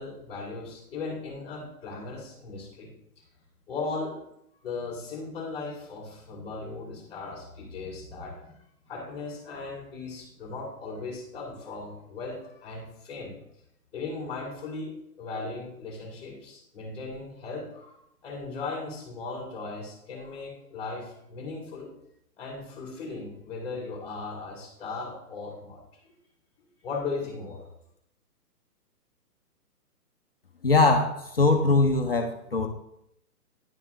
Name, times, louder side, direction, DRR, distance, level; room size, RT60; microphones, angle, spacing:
voice 1, 0.0-2.9 3.7-4.2 4.6-13.4 13.9-14.9 15.2-21.9 22.4-25.8 26.8-27.7, left 3 dB, 5° left, -7 dB, 1.9 m, -37 dB
voice 2, 30.6-32.7, left 3 dB, 40° left, 2 dB, 0.5 m, -22 dB
10.5 x 3.6 x 3.3 m, 0.78 s
hypercardioid pair, 175°, 47 cm